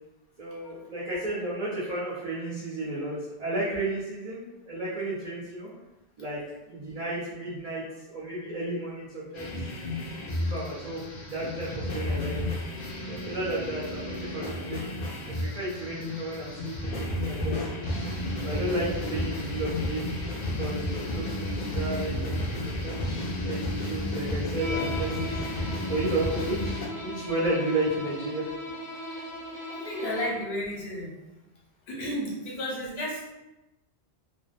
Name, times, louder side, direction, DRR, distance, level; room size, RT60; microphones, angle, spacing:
voice 1, 0.4-5.7 6.2-6.4 6.7-9.5 10.4-12.4 13.1-14.9 15.4-17.7 18.4-20.1 20.4-23.1 23.4-28.4, right 2 dB, 45° right, -10 dB, 0.7 m, -33 dB
sound 1, 9.3-26.9, left 1 dB, 55° left, 0.6 m, -32 dB
Bowed string instrument, 24.6-30.5, left 2 dB, 80° right, 1.0 m, -37 dB
voice 2, 29.7-31.1 31.9-33.4, equal, 75° left, -3 dB, 1.0 m, -32 dB
2.5 x 2.0 x 2.5 m, 0.99 s
omnidirectional pair, 1.1 m